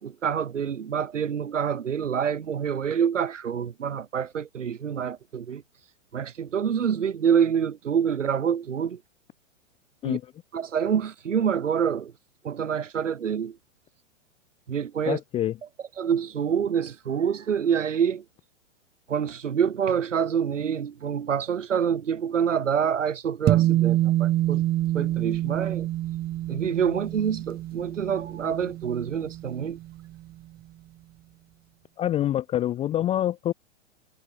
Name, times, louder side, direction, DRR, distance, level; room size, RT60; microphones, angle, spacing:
voice 1, 0.0-5.6 6.1-9.0 10.0-10.2 10.5-12.1 12.4-13.6 14.7-15.2 16.0-18.2 19.1-24.6 24.9-25.9 26.5-29.8, right 7 dB, 90° right, 4.2 m, -26 dB
voice 2, 15.1-15.6 32.0-33.5, left 12 dB, 15° left, 0.6 m, -26 dB
sound 1, 23.5-30.1, right 14 dB, 25° right, 2.0 m, -26 dB
hypercardioid pair, 135°, 36 cm